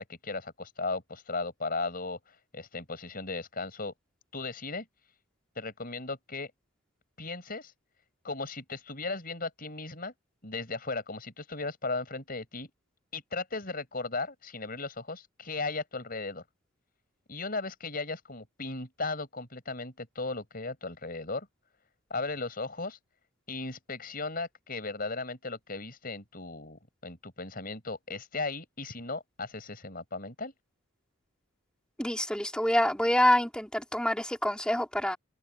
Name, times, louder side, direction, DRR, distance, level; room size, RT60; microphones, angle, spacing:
voice 1, 0.0-3.9 4.3-4.9 5.5-6.5 7.2-7.7 8.2-10.1 10.4-12.7 13.1-16.4 17.3-21.5 22.1-23.0 23.5-30.5, left 3 dB, 40° left, 6.1 m, -36 dB
voice 2, 32.0-35.2, left 1 dB, 5° left, 3.3 m, -26 dB
open air
head